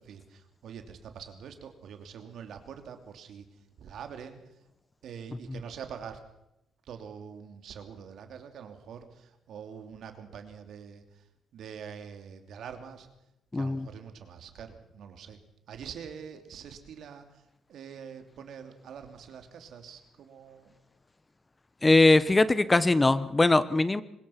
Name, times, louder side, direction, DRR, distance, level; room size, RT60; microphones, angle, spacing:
voice 1, 0.0-4.6 5.0-6.2 6.8-11.3 11.5-13.1 13.5-15.4 15.7-20.7, right 7 dB, 70° right, 7 dB, 2.8 m, -45 dB
voice 2, 13.5-13.9 21.8-24.0, left 2 dB, 20° left, 15 dB, 1.0 m, -21 dB
23.5 x 20.5 x 5.9 m, 0.85 s
cardioid pair, 90°, 0 cm